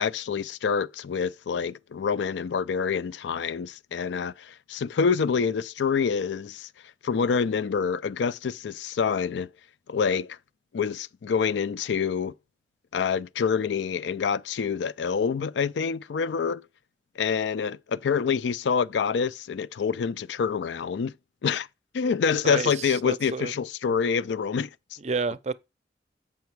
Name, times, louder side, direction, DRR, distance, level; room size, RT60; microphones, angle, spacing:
voice 1, 0.0-6.7 7.0-9.5 9.9-10.4 10.7-12.3 12.9-16.7 17.2-21.1 21.4-21.7 21.9-24.7, left 6 dB, 85° left, 0.4 m, -26 dB
voice 2, 22.4-23.5 25.0-25.5, right 4 dB, 40° right, 0.5 m, -30 dB
8.0 x 5.6 x 4.6 m
head